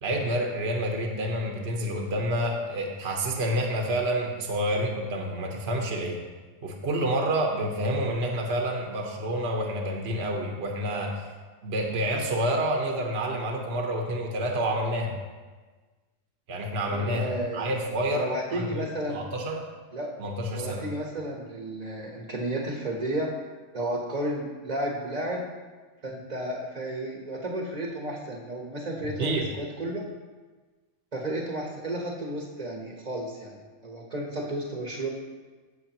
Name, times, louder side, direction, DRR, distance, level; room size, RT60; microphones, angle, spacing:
voice 1, 0.0-6.2 6.6-11.2 11.6-15.1 16.5-19.7 20.2-20.8 29.2-29.5, right 1 dB, 55° right, 1 dB, 1.2 m, -28 dB
voice 2, 16.8-17.7 18.1-19.2 19.9-20.1 20.5-23.3 23.7-25.4 26.0-30.0 31.1-35.1, right 1 dB, 30° right, -1 dB, 1.1 m, -32 dB
16.0 x 6.5 x 2.9 m, 1.4 s
omnidirectional pair, 1.4 m